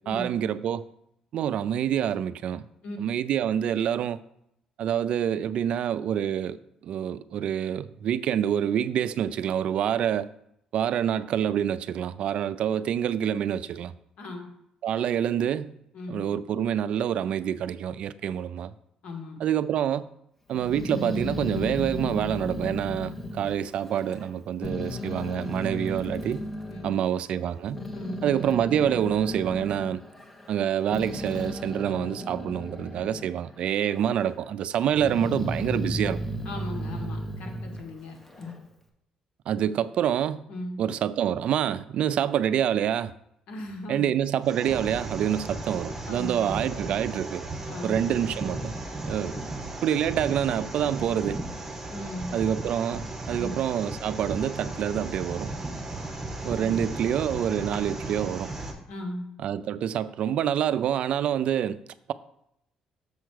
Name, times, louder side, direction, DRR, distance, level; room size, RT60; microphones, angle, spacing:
voice 1, 0.1-0.8 1.3-2.7 3.0-4.2 4.8-6.6 6.8-10.3 10.7-13.9 14.8-15.7 16.1-18.7 19.4-20.1 20.5-26.5 26.8-27.8 28.2-30.0 30.5-36.2 39.5-40.4 40.8-43.1 43.9-47.5 47.8-48.7 49.0-49.4 49.8-51.4 52.3-55.6 56.4-58.5 59.4-61.8, right 9 dB, 65° right, 0.4 m, -27 dB
voice 2, 19.0-19.4 26.7-27.0 27.9-28.3 36.4-38.5 40.5-40.8 43.5-44.1 46.1-46.6 47.7-48.1 51.9-52.4 53.4-53.6 56.6-56.9 58.9-59.3, left 1 dB, 75° left, 2.0 m, -38 dB
Growling, 20.5-24.3 24.6-26.9 27.5-33.3 33.7-34.4 34.8-38.6, equal, 15° left, 1.1 m, -34 dB
sound 1, 44.4-58.7, right 2 dB, 20° right, 1.5 m, -35 dB
6.8 x 4.6 x 6.4 m
cardioid pair, 120°, 2 cm